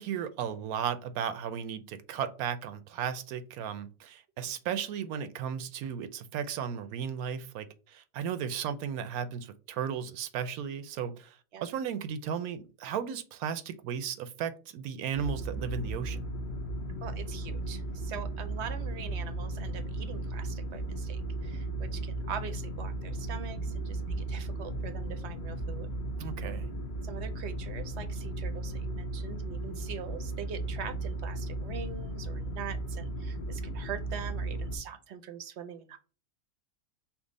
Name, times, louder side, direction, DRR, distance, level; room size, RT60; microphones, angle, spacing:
voice 1, 0.0-11.3 11.6-16.2 26.2-26.7, right 8 dB, 80° right, 1.1 m, -35 dB
sound 1, 15.1-34.8, right 2 dB, 45° left, 0.8 m, -36 dB
voice 2, 17.0-25.9 27.0-36.0, right 7 dB, 60° right, 0.8 m, -43 dB
5.9 x 2.1 x 3.9 m
omnidirectional pair, 1.5 m